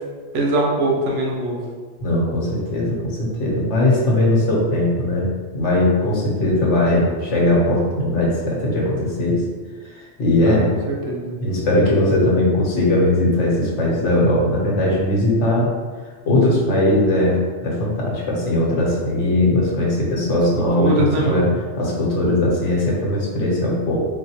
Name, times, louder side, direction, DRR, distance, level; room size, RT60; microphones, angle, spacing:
voice 1, 0.3-1.6 10.4-11.3 20.7-21.5, right 1 dB, 85° right, -1 dB, 1.0 m, -22 dB
voice 2, 2.0-9.4 9.9-10.7 11.4-15.7 16.2-21.5 21.8-24.0, left 1 dB, 80° left, -4 dB, 1.2 m, -19 dB
4.0 x 2.1 x 2.8 m, 1.5 s
omnidirectional pair, 1.2 m